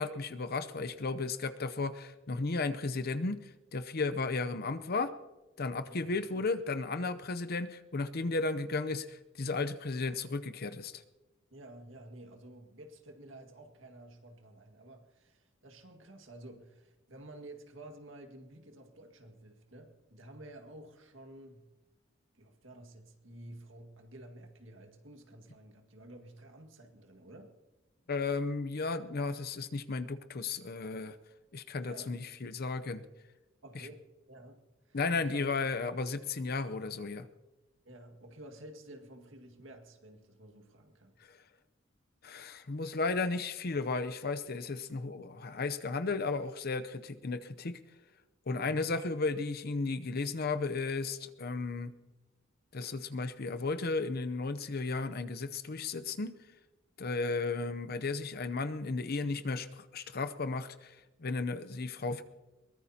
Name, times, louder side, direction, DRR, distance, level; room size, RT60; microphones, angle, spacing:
voice 1, 0.0-5.1 5.6-11.0 28.1-31.2 31.5-33.0 33.7-33.9 34.9-37.3 41.2-41.4 42.2-47.8 48.5-51.9 52.7-56.4 57.0-62.2, left 3 dB, 50° left, 10 dB, 0.7 m, -34 dB
voice 2, 11.5-21.7 22.3-27.5 31.8-32.2 33.6-35.4 37.8-41.1 48.5-48.8, right 1 dB, 80° right, 4 dB, 2.0 m, -51 dB
22.5 x 20.0 x 2.9 m, 1.1 s
head